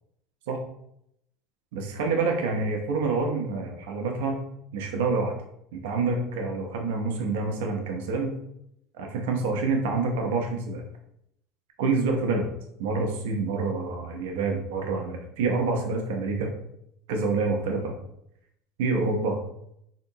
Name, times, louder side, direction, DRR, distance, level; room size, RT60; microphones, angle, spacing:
voice 1, 1.7-4.4 4.7-5.3 5.7-8.4 9.0-10.8 11.8-12.5 12.8-16.5 17.1-18.0 18.8-19.4, right 3 dB, 80° right, 2 dB, 0.6 m, -27 dB
3.6 x 2.7 x 2.7 m, 0.76 s
supercardioid pair, 100°, 0 cm